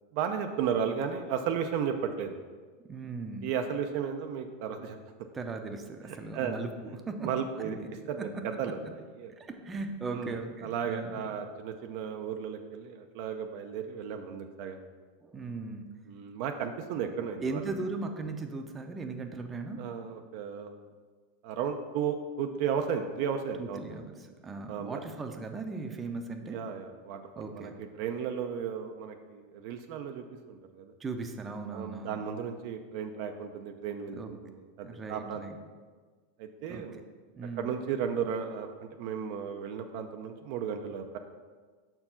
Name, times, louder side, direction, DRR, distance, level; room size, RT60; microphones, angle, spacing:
voice 1, 0.1-2.4 3.4-5.0 6.1-6.6 7.2-7.8 8.1-9.3 10.2-10.3 10.6-14.8 16.1-17.6 19.8-20.8 21.4-24.0 24.7-25.0 26.5-27.7 28.0-30.9 31.7-35.4 36.4-37.0 37.6-41.2, right 7 dB, 60° right, 5 dB, 0.5 m, -34 dB
voice 2, 2.9-3.5 5.3-7.3 7.6-7.9 8.2-8.3 9.3-11.2 15.2-15.8 17.4-19.8 23.6-26.6 27.4-27.7 31.0-32.2 34.1-34.3 34.8-35.6 36.7-37.0 37.4-37.7, right 3 dB, 20° right, 5 dB, 0.7 m, -38 dB
5.8 x 4.5 x 5.7 m, 1.5 s
supercardioid pair, 115°, 0 cm